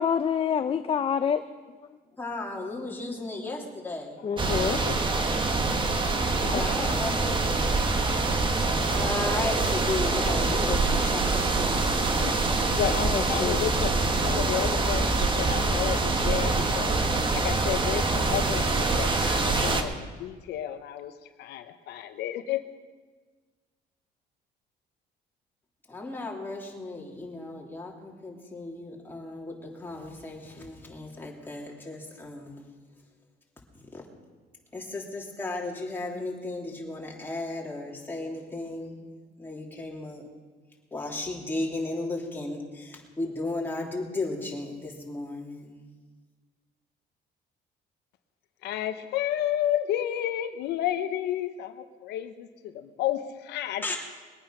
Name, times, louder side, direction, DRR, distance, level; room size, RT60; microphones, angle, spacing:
voice 1, 0.0-1.4 4.2-4.8 6.4-6.6 13.0-13.6, left 7 dB, 35° left, 10 dB, 0.5 m, -27 dB
voice 2, 2.2-4.2 6.5-7.5 8.9-12.1 25.9-32.7 33.9-34.0 34.7-39.1 39.4-40.2 40.9-45.8 53.8-54.0, left 2 dB, 10° left, -2 dB, 3.1 m, -35 dB
sound 1, 4.4-19.8, right 3 dB, 30° right, 1.4 m, -25 dB
voice 3, 4.7-5.2 12.0-16.9 17.3-21.1 21.4-22.6 48.6-53.8, left 11 dB, 80° left, 8 dB, 0.9 m, -32 dB
22.0 x 8.8 x 5.9 m, 1.4 s
cardioid pair, 110°, 17 cm